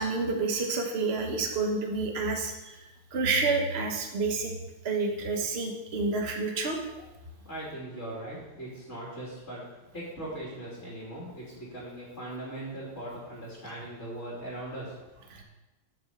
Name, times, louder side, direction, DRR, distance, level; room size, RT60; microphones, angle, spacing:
voice 1, 0.0-2.8 3.1-4.5 4.8-7.0 15.3-15.4, right 3 dB, 40° right, 2 dB, 1.3 m, -29 dB
voice 2, 7.4-9.6 9.9-15.4, right 1 dB, 35° left, -6 dB, 3.2 m, -40 dB
8.6 x 6.2 x 7.1 m, 1.0 s
omnidirectional pair, 2.0 m